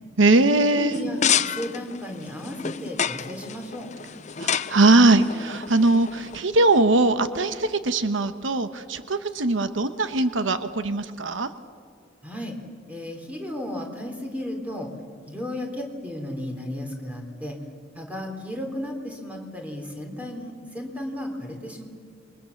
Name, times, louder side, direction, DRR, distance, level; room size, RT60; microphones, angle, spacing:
voice 1, 0.2-0.9 4.4-11.5, right 2 dB, 85° right, 10 dB, 1.1 m, -21 dB
voice 2, 0.7-3.9 12.2-12.6 12.9-14.9 15.3-17.6 17.9-21.8, left 1 dB, 10° right, 2 dB, 3.6 m, -34 dB
sound 1, 0.9-6.4, left 8 dB, 40° left, 0.6 m, -29 dB
27.5 x 22.5 x 7.2 m, 2.1 s
head